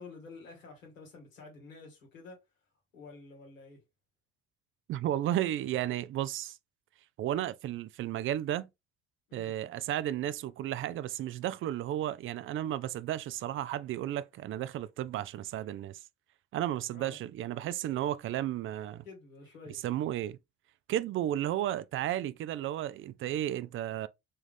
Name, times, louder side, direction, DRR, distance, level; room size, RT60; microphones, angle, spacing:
voice 1, 0.0-2.4 2.9-3.8 9.3-9.5 16.9-17.2 19.0-19.8, left 3 dB, 90° left, 1.6 m, -50 dB
voice 2, 4.9-6.6 7.2-8.7 9.3-16.0 16.5-19.1 19.8-20.4 20.9-24.1, right 12 dB, 35° right, 0.4 m, -33 dB
3.6 x 3.2 x 3.3 m
hypercardioid pair, 55°, 39 cm